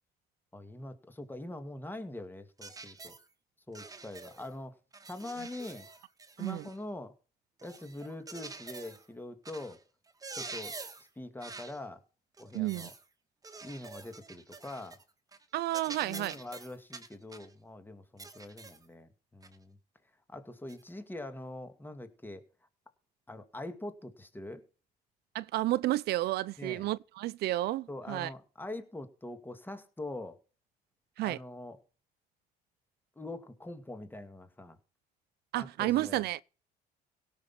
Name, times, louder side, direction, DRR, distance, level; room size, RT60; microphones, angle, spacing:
voice 1, 0.5-3.1 3.7-4.8 5.1-5.9 6.4-7.1 7.6-9.8 10.3-10.8 11.2-12.0 12.4-12.9 13.6-15.0 15.9-19.8 20.3-22.4 23.3-24.6 26.6-26.9 27.9-30.4 31.2-31.8 33.2-34.8 35.5-36.3, left 2 dB, 10° left, 2.2 m, -43 dB
sound 1, 2.6-3.2 3.7-4.5 4.9-6.8 7.6-9.1 9.4-9.8 10.1-11.1 11.4-11.8 12.4-13.0 13.4-15.0 15.3-15.4 15.7-17.5 18.2-18.8 19.4-19.6 20.7-20.8, right 4 dB, 20° right, 1.8 m, -47 dB
voice 2, 12.5-12.9 15.5-16.3 25.3-28.3 31.2-31.4 35.5-36.4, right 16 dB, 75° right, 0.5 m, -31 dB
17.0 x 6.3 x 5.8 m
cardioid pair, 110°, 17 cm